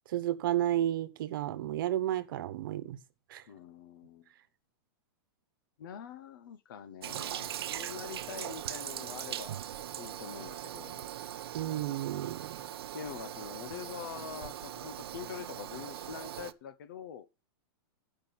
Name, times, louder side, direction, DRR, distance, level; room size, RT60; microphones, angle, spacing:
voice 1, 0.1-3.0 3.3-3.4 11.5-12.6, right 12 dB, 60° right, 1.1 m, -32 dB
voice 2, 3.5-4.3 5.8-9.5 10.0-11.1 12.9-17.3, left 8 dB, 60° left, 0.8 m, -45 dB
Toilet flush, 7.0-16.5, right 11 dB, 80° right, 0.7 m, -40 dB
12.0 x 5.5 x 5.8 m
supercardioid pair, 160°, 13 cm